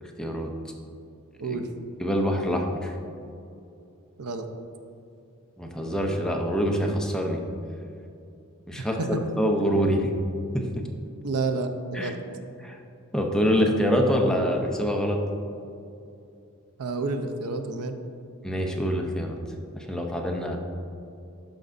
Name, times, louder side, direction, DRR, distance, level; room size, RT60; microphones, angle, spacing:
voice 1, 0.2-0.5 1.5-1.6 2.0-3.0 5.6-7.4 8.7-9.0 9.4-10.1 10.5-10.8 11.9-12.1 12.6-12.8 13.1-15.2 18.4-19.4 19.8-20.6, equal, 5° left, 1 dB, 0.5 m, -25 dB
voice 2, 11.2-12.2 16.8-17.9, right 3 dB, 85° right, 6 dB, 0.6 m, -29 dB
12.0 x 5.2 x 2.6 m, 2.6 s
head